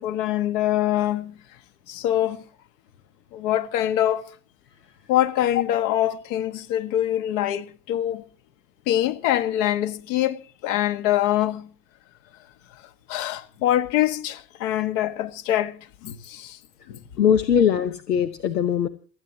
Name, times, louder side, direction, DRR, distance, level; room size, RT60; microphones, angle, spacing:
voice 1, 0.0-1.4 1.9-2.4 3.3-4.3 5.1-8.2 8.9-11.7 12.7-12.8 13.1-16.6 16.9-17.0, left 12 dB, 50° left, 1.6 m, -24 dB
voice 2, 17.2-18.9, left 8 dB, 75° left, 1.1 m, -21 dB
28.0 x 9.8 x 2.9 m
figure-of-eight pair, 80°, 49 cm